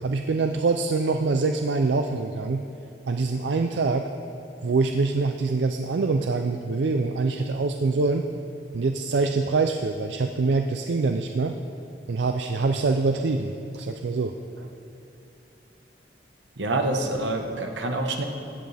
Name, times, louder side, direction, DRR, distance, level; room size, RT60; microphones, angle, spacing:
voice 1, 0.0-2.6 3.1-4.1 4.6-8.3 8.7-11.6 12.1-14.7, right 3 dB, 70° right, 6 dB, 0.4 m, -25 dB
voice 2, 16.6-18.2, right 2 dB, 90° right, 4 dB, 1.2 m, -26 dB
16.5 x 10.5 x 3.4 m, 2.6 s
head